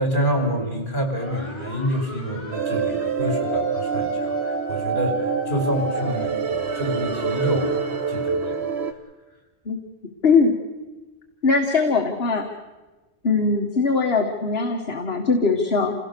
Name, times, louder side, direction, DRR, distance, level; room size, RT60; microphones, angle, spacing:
voice 1, 0.0-7.7 8.1-8.6, equal, 50° left, 3 dB, 4.6 m, -27 dB
sound 1, 1.2-8.4, equal, 10° left, 4.0 m, -33 dB
sound 2, 2.5-8.9, right 6 dB, 90° right, 1.3 m, -27 dB
voice 2, 10.2-10.5 11.4-12.5 13.2-15.9, left 4 dB, 70° left, 3 dB, 1.7 m, -20 dB
27.5 x 17.0 x 6.8 m, 1.2 s
omnidirectional pair, 1.1 m